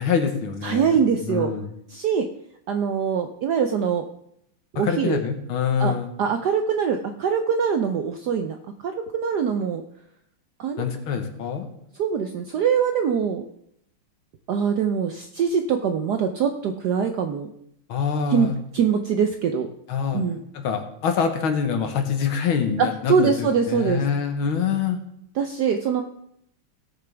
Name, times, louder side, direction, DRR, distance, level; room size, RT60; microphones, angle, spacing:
voice 1, 0.0-1.7 4.8-6.1 10.8-11.7 17.9-18.6 19.9-20.2 20.5-25.0, left 6 dB, 70° left, 6 dB, 1.9 m, -25 dB
voice 2, 0.6-1.5 1.9-2.3 2.7-4.1 4.7-5.2 5.8-5.9 6.2-9.8 10.6-10.9 12.0-13.4 14.5-17.5 18.3-19.7 20.1-20.4 22.8-24.0 25.4-26.0, right 6 dB, 75° right, 7 dB, 0.9 m, -23 dB
17.5 x 6.8 x 3.4 m, 0.74 s
omnidirectional pair, 2.4 m